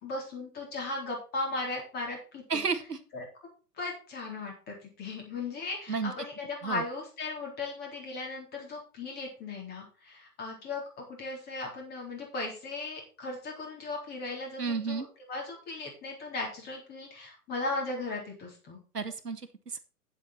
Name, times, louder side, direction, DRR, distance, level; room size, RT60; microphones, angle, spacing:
voice 1, 0.0-2.6 3.1-3.3 3.8-18.8, left 3 dB, 20° left, 0 dB, 3.7 m, -37 dB
voice 2, 2.5-3.0 5.9-6.1 6.6-6.8 14.6-15.1 18.9-19.8, right 5 dB, 85° right, 9 dB, 1.5 m, -32 dB
9.0 x 7.8 x 4.3 m, 0.35 s
figure-of-eight pair, 130°, 46 cm